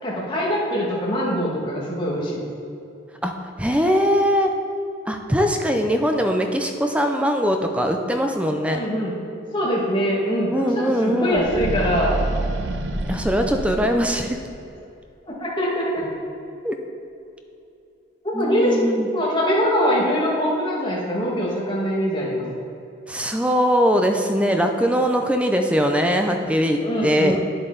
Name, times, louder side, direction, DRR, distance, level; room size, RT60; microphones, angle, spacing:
voice 1, 0.0-2.4 8.7-9.2 9.5-12.2 15.3-16.1 18.2-18.8 19.1-22.5 26.8-27.4, equal, 25° left, -5 dB, 1.8 m, -23 dB
voice 2, 3.6-4.5 5.1-8.8 10.5-11.5 13.1-14.4 16.6-16.8 18.3-19.1 23.1-27.4, equal, 5° right, 4 dB, 0.5 m, -21 dB
sound 1, 11.3-14.6, right 2 dB, 65° right, 0.6 m, -28 dB
9.4 x 7.7 x 3.9 m, 2.7 s
head